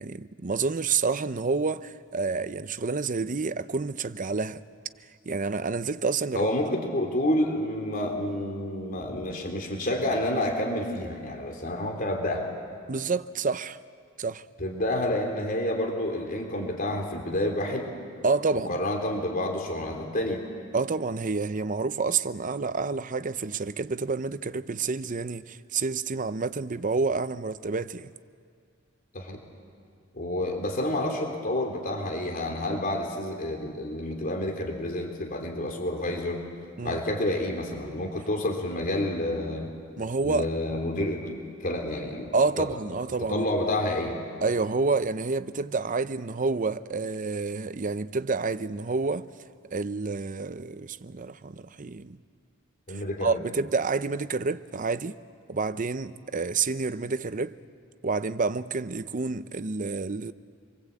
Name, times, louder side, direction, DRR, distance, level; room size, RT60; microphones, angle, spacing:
voice 1, 0.0-4.6 5.3-6.5 12.9-13.8 14.2-14.5 18.2-18.8 20.7-28.1 36.8-37.0 40.0-40.5 42.3-43.5 44.4-49.3 49.7-52.2 52.9-55.2 55.5-57.6 58.0-60.3, right 4 dB, 40° right, 0.7 m, -29 dB
voice 2, 6.3-12.4 14.6-17.9 18.7-20.4 29.1-29.4 30.1-36.4 36.8-39.7 40.2-42.7 43.3-44.2 52.9-53.4, left 1 dB, 45° left, 3.5 m, -29 dB
27.0 x 23.5 x 8.4 m
head